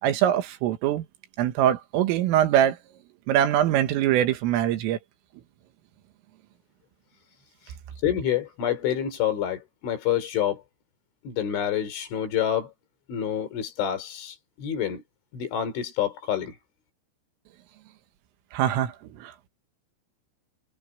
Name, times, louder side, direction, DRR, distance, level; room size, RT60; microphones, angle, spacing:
voice 1, 0.0-1.1 1.4-2.8 3.3-5.0 18.5-18.9 19.2-19.5, right 11 dB, 80° right, 4.2 m, -23 dB
voice 2, 8.0-10.6 11.2-12.7 13.1-15.0 15.3-16.5, left 10 dB, 70° left, 6.1 m, -27 dB
omnidirectional pair, 5.8 m